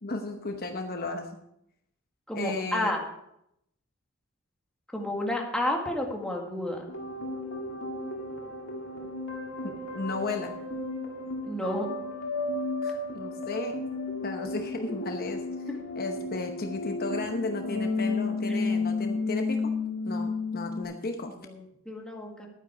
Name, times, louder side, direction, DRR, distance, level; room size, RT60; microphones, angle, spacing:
voice 1, 0.0-1.4 2.3-2.9 9.6-10.6 12.8-13.8 14.2-15.4 16.0-19.8 20.0-21.3, left 3 dB, 45° left, 5 dB, 0.9 m, -34 dB
voice 2, 2.3-3.0 4.9-6.9 11.4-11.9 18.5-18.6 21.4-22.5, left 1 dB, 5° left, -1 dB, 1.8 m, -31 dB
sound 1, 6.9-20.8, left 3 dB, 70° left, 2.0 m, -33 dB
12.0 x 9.2 x 4.7 m, 0.78 s
head